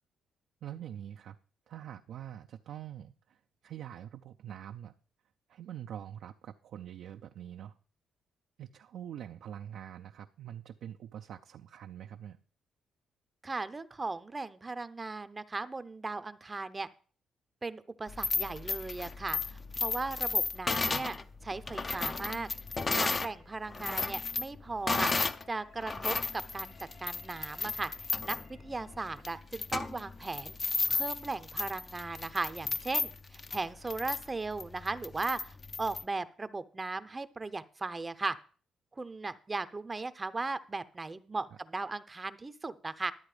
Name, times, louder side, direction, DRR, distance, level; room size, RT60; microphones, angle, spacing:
voice 1, 0.6-1.4 1.7-5.0 5.5-7.8 8.6-12.4, right 10 dB, 75° right, 0.5 m, -45 dB
voice 2, 13.4-16.9 17.6-21.2 21.4-22.5 22.9-38.3 39.0-43.1, right 3 dB, 25° right, 0.6 m, -37 dB
sound 1, 18.1-23.3 23.7-25.4 25.8-36.0, left 4 dB, 35° left, 0.7 m, -34 dB
sound 2, 22.4-29.2, left 4 dB, 80° left, 2.5 m, -62 dB
12.0 x 8.1 x 4.9 m
cardioid pair, 90°, 0 cm